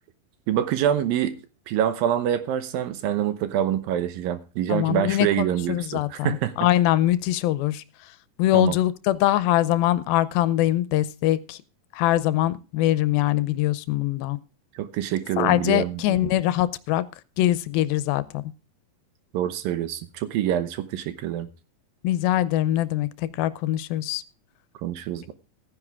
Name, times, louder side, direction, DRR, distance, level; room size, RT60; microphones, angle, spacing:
voice 1, 0.5-1.4 1.7-6.5 8.5-8.7 14.8-16.3 19.3-21.5 24.8-25.3, right 10 dB, 75° right, 2.7 m, -26 dB
voice 2, 4.7-7.8 8.4-11.6 11.9-14.4 15.4-17.0 17.4-18.4 22.0-23.1 23.4-24.2, left 14 dB, 85° left, 2.5 m, -23 dB
14.5 x 9.9 x 3.5 m
omnidirectional pair, 4.2 m